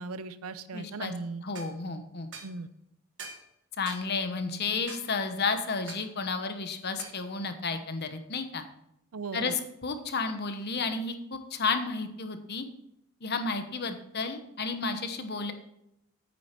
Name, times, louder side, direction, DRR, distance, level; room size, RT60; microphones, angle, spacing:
voice 1, 0.0-1.4 2.4-2.7 9.1-9.5, right 3 dB, 80° right, 13 dB, 0.6 m, -37 dB
voice 2, 0.7-1.1 1.4-2.3 3.8-8.6 9.3-12.7 13.2-15.5, left 4 dB, 50° left, 8 dB, 1.1 m, -32 dB
sound 1, 1.5-1.7 2.3-2.5 3.2-3.5 3.9-4.1 4.9-5.1 5.9-6.1 7.0-7.2, right 4 dB, 55° right, 1.5 m, -43 dB
9.0 x 8.5 x 4.5 m, 0.78 s
head